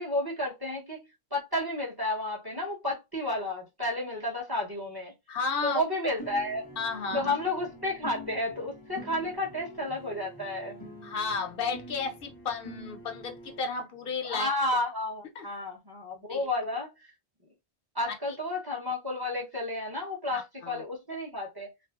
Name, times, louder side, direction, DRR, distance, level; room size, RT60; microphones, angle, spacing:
voice 1, 0.0-5.1 5.6-6.6 7.1-10.9 14.2-17.1 17.9-21.7, left 1 dB, 25° right, 0.7 m, -32 dB
voice 2, 5.3-5.8 6.8-7.3 11.0-14.5 15.4-15.5 16.3-16.4 20.3-20.8, left 4 dB, 65° left, 0.7 m, -33 dB
sound 1, 6.2-13.6, equal, 25° left, 0.7 m, -45 dB
2.7 x 2.5 x 2.3 m
omnidirectional pair, 1.0 m